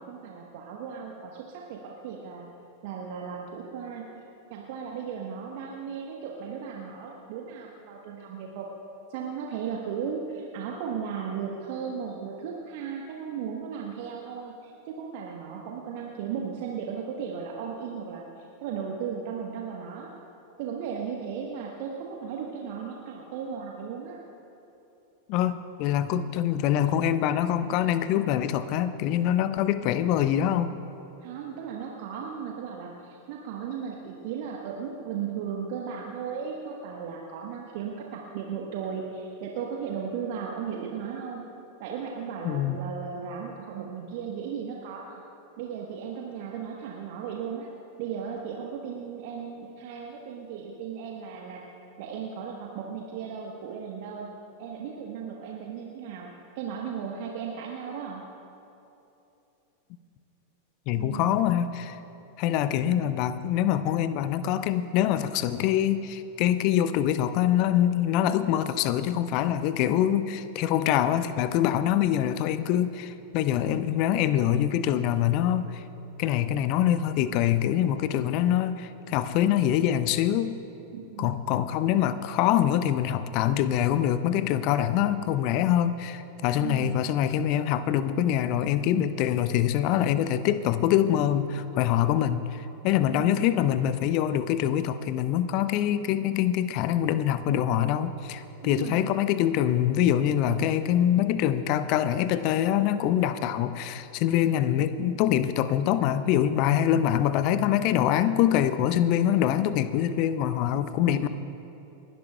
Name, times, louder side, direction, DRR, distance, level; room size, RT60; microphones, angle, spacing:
voice 1, 0.0-2.5 2.8-4.0 4.5-8.7 9.1-20.1 20.6-24.2 31.2-41.4 41.8-45.2 45.6-47.7 48.0-51.6 52.0-54.3 54.6-56.3 56.5-58.2 60.9-61.4 62.8-63.1 80.9-81.3 86.6-87.0 93.1-93.5 98.6-99.0 111.1-111.3, right 7 dB, 50° right, -1 dB, 1.3 m, -36 dB
voice 2, 25.3-30.7 42.4-42.8 60.9-62.0 62.4-75.8 76.2-80.5 81.2-111.3, left 10 dB, 45° left, 13 dB, 0.6 m, -24 dB
30.0 x 12.0 x 2.4 m, 2.9 s
figure-of-eight pair, 90°, 0 cm